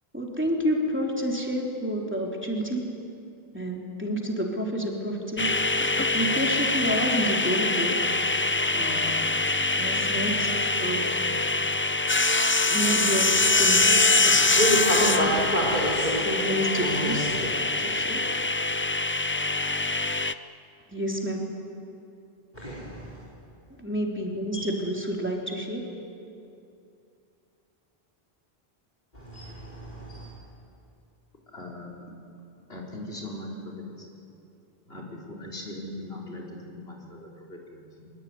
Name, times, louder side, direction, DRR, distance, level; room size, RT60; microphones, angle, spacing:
voice 1, 0.1-2.8 3.5-5.5 6.1-8.0 8.7-9.1 9.8-11.1 12.7-13.3 13.6-14.0 14.2-14.3 15.0-15.2 16.3-17.3 17.8-18.2 20.9-21.4 23.8-25.8, equal, 10° right, -1 dB, 3.5 m, -29 dB
sound 1, 5.4-20.3, left 3 dB, 15° left, 0.4 m, -24 dB
voice 2, 14.3-16.2 16.8-17.5 22.5-23.1 24.5-24.6 29.1-30.3, equal, 45° left, -5 dB, 4.4 m, -28 dB
voice 3, 31.5-31.9 32.7-33.8 34.9-38.1, left 1 dB, 75° left, 0 dB, 4.9 m, -40 dB
23.5 x 23.5 x 9.6 m, 2.6 s
omnidirectional pair, 1.1 m